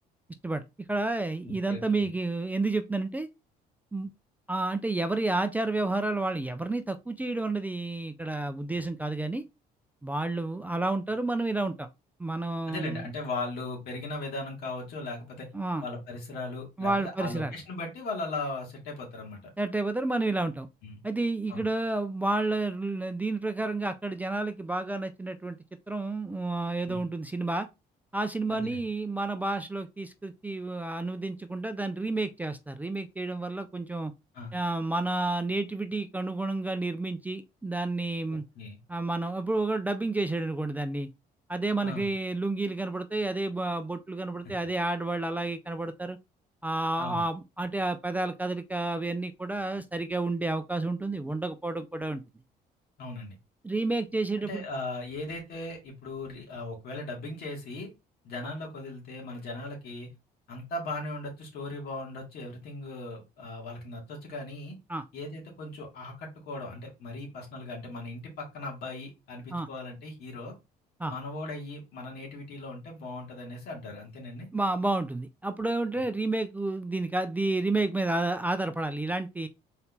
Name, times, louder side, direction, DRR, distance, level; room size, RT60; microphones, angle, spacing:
voice 1, 0.9-3.3 3.9-4.1 4.5-9.4 10.0-11.9 12.2-13.1 15.5-15.8 16.8-17.5 19.6-20.7 21.0-25.6 25.9-27.7 28.1-34.1 34.5-38.4 38.9-41.1 41.5-46.2 46.6-52.2 53.6-54.6 64.9-65.0 69.5-69.7 71.0-71.1 74.5-79.5, right 2 dB, 10° right, 0.3 m, -30 dB
voice 2, 1.5-2.1 12.7-15.5 15.8-19.4 20.8-21.0 21.5-21.7 26.9-27.0 28.5-28.9 34.3-34.5 38.3-38.8 41.8-42.1 47.0-47.3 53.0-53.4 54.4-57.9 58.2-60.1 60.5-64.8 65.1-70.5 71.1-74.5, left 2 dB, 70° left, 2.2 m, -38 dB
4.1 x 4.1 x 2.7 m
cardioid pair, 110°, 17 cm